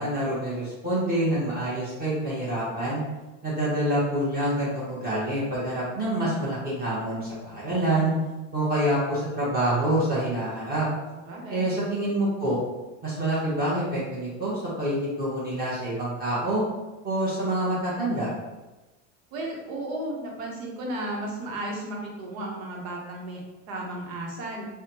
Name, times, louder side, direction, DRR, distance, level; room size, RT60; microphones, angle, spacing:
voice 1, 0.0-3.0 3.4-8.1 8.5-10.9 11.5-12.6 13.0-16.6 17.0-18.3, right 1 dB, 25° right, -8 dB, 1.1 m, -26 dB
voice 2, 11.2-11.6 19.3-23.4 23.7-24.7, right 1 dB, 85° right, -2 dB, 1.0 m, -34 dB
3.4 x 2.3 x 2.8 m, 1.1 s
supercardioid pair, 125°, 39 cm